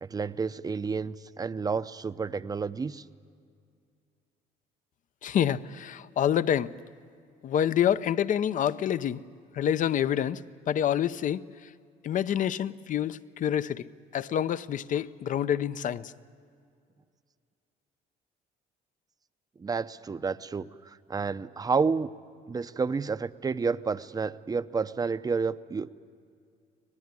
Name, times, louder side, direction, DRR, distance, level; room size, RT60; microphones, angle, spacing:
voice 1, 0.0-3.0 19.6-22.1 22.5-25.9, right 5 dB, 20° right, 13 dB, 0.7 m, -30 dB
voice 2, 5.2-6.7 7.4-9.3 9.5-11.7 12.0-13.9 14.1-16.1, left 9 dB, 50° left, 15 dB, 0.7 m, -27 dB
24.5 x 19.5 x 9.7 m, 2.3 s
cardioid pair, 110°, 17 cm